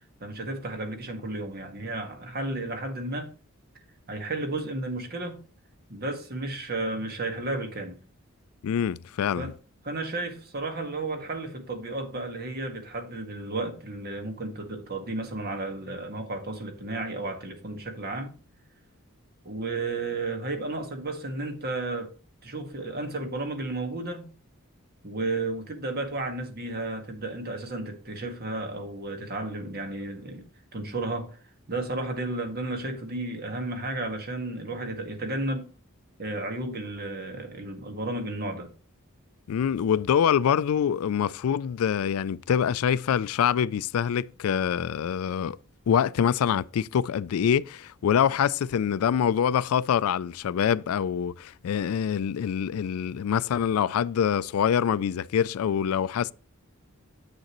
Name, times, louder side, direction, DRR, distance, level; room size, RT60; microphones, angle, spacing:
voice 1, 0.2-3.3 4.1-5.4 5.9-8.0 9.3-9.5 9.8-18.3 19.4-22.1 22.4-24.3 25.0-30.4 30.7-31.4 31.7-35.7 36.2-38.7, right 2 dB, 45° right, 1.6 m, -33 dB
voice 2, 8.6-9.5 39.5-45.6 45.9-56.3, left 8 dB, 85° left, 0.3 m, -25 dB
7.9 x 6.4 x 3.0 m
head